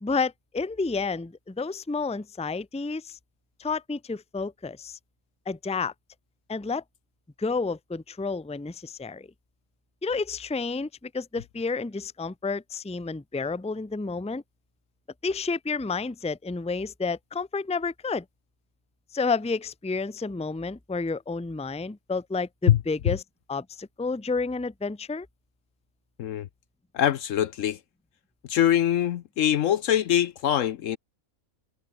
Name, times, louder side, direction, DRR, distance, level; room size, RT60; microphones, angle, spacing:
voice 1, 0.0-3.2 3.6-5.0 5.5-5.9 6.5-6.8 7.4-9.3 10.0-14.4 15.2-18.2 19.1-23.2 23.5-25.3, left 4 dB, 5° left, 0.7 m, -30 dB
voice 2, 26.9-27.8 28.5-31.0, left 11 dB, 65° left, 1.0 m, -23 dB
omnidirectional pair, 1.5 m